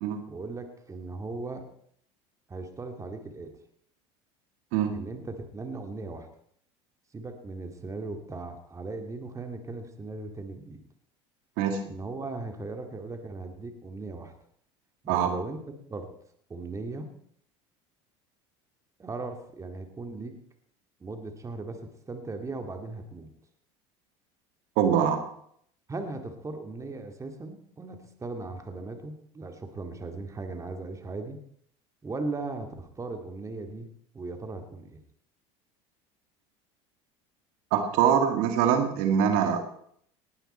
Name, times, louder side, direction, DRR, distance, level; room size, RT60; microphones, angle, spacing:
voice 1, 0.3-1.6 2.5-3.5 4.9-6.3 7.1-10.8 11.8-14.3 15.0-15.6 15.9-16.1 16.5-17.1 19.0-20.4 21.0-23.3 25.9-31.4 32.0-35.0, right 3 dB, 20° right, 5 dB, 2.3 m, -38 dB
voice 2, 24.8-25.2 37.7-39.7, right 8 dB, 70° right, 6 dB, 2.2 m, -24 dB
19.0 x 11.5 x 4.4 m, 0.65 s
supercardioid pair, 95°, 15 cm